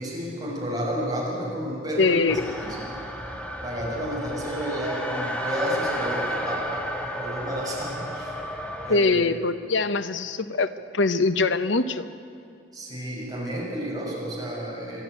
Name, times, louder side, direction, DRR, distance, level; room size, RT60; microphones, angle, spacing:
voice 1, 0.0-2.9 3.6-6.9 7.1-8.3 8.8-9.1 12.7-15.0, equal, 20° right, -4 dB, 6.1 m, -31 dB
voice 2, 2.0-2.4 8.9-12.1, left 3 dB, 75° left, 11 dB, 0.9 m, -23 dB
sound 1, 2.3-9.0, equal, 5° left, 1.7 m, -32 dB
27.0 x 11.0 x 9.4 m, 2.4 s
head